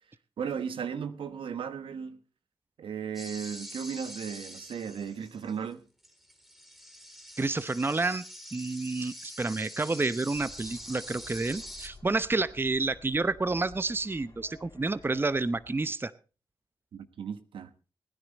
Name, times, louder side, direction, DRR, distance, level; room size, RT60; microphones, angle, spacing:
voice 1, 0.4-2.2 2.8-5.8 16.9-17.7, right 7 dB, 80° right, 1.2 m, -36 dB
sound 1, 3.1-5.7 6.0-11.9, equal, 5° right, 3.6 m, -45 dB
voice 2, 7.4-8.2 8.5-16.1, right 3 dB, 25° right, 0.7 m, -29 dB
sound 2, 10.3-15.9, left 3 dB, 45° left, 3.5 m, -53 dB
19.5 x 10.0 x 4.0 m
cardioid pair, 55°, 9 cm